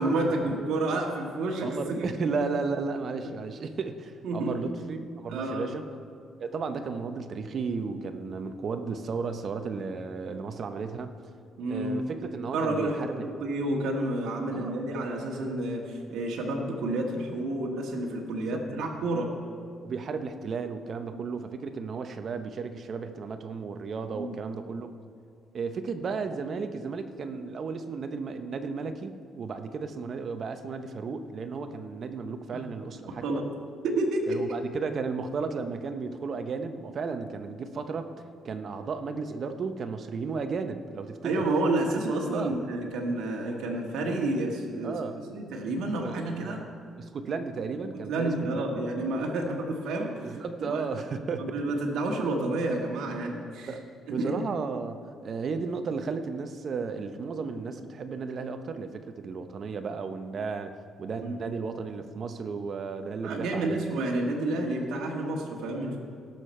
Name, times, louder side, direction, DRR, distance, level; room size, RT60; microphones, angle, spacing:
voice 1, 0.0-2.1 3.2-3.3 4.2-4.7 5.3-5.7 11.6-12.0 12.5-19.3 21.1-21.2 24.1-24.3 33.2-33.5 33.8-34.4 41.2-46.6 47.9-50.9 51.4-53.7 54.1-54.4 61.2-61.6 63.2-66.0, right 2 dB, 80° right, 0 dB, 1.6 m, -30 dB
voice 2, 1.6-5.8 6.4-11.1 11.7-13.2 14.5-14.9 18.5-18.6 19.8-24.9 25.5-33.4 34.3-41.4 42.3-42.6 44.8-45.2 46.0-46.6 47.0-48.8 50.2-51.5 53.7-60.7 61.0-64.0, right 4 dB, 55° right, 8 dB, 0.8 m, -34 dB
17.5 x 6.7 x 4.4 m, 2.3 s
cardioid pair, 90°, 0 cm